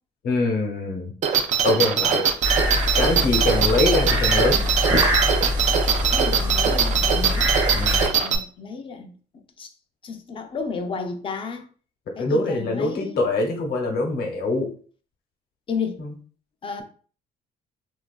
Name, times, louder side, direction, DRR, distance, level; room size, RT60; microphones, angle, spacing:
voice 1, 0.2-1.1 1.6-2.2 3.0-4.6 7.7-8.0 12.2-14.7 16.0-16.1, left 2 dB, 65° left, 0.8 m, -23 dB
sound 1, 1.2-8.4, right 7 dB, 45° right, 0.4 m, -22 dB
sound 2, 2.4-8.1, left 1 dB, 25° right, 0.8 m, -24 dB
voice 2, 6.1-7.6 8.1-9.1 9.6-9.7 10.0-11.6 12.2-13.2 15.7-16.0 16.6-16.8, left 4 dB, 30° left, 0.4 m, -32 dB
2.9 x 2.3 x 2.3 m
cardioid pair, 110°, 17 cm